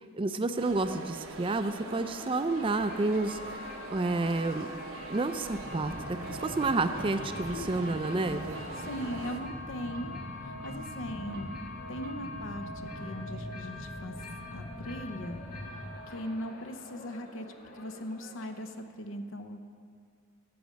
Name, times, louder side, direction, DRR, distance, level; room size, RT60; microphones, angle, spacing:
voice 1, 0.1-3.4 3.9-4.7 5.1-8.6, right 3 dB, 25° right, 10 dB, 0.4 m, -30 dB
sound 1, 0.6-9.4, right 3 dB, 75° right, 0.9 m, -43 dB
sound 2, 2.4-18.8, left 1 dB, 40° left, 1.2 m, -45 dB
sound 3, 5.6-15.9, equal, 85° left, 2.0 m, -43 dB
voice 2, 8.7-11.6 11.9-12.7 13.0-14.2 14.5-15.4 16.1-17.5 17.7-19.6, left 1 dB, 65° left, 7 dB, 0.7 m, -39 dB
12.5 x 5.1 x 8.4 m, 2.2 s
head